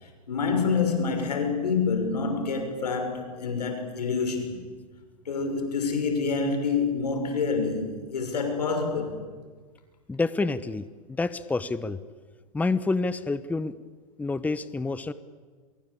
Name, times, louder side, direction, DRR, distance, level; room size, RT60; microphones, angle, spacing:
voice 1, 0.0-4.7 5.2-9.2, left 5 dB, 85° left, 6.1 m, -27 dB
voice 2, 10.1-12.0 12.5-13.7 14.2-15.1, left 3 dB, 10° left, 0.9 m, -28 dB
24.5 x 22.5 x 8.6 m
hypercardioid pair, 115°, 20 cm